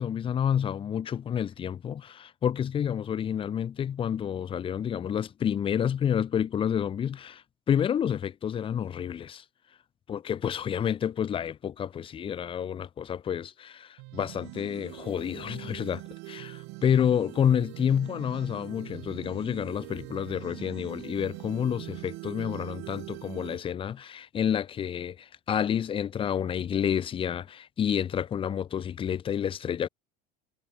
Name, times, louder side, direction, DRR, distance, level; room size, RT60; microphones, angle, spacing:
voice 1, 0.0-9.4 10.1-29.9, left 8 dB, 25° left, 6.0 m, -29 dB
sound 1, 14.0-23.6, right 28 dB, 60° right, 5.6 m, -43 dB
cardioid pair, 165°, 20 cm